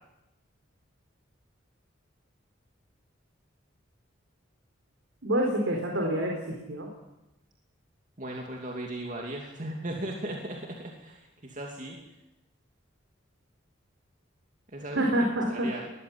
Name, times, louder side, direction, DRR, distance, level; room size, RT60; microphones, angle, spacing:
voice 1, 5.2-6.9 15.0-15.7, right 1 dB, 80° right, 0 dB, 4.1 m, -27 dB
voice 2, 8.2-12.0 14.7-15.8, right 1 dB, 40° right, 0 dB, 2.6 m, -37 dB
20.0 x 15.0 x 9.8 m, 0.96 s
head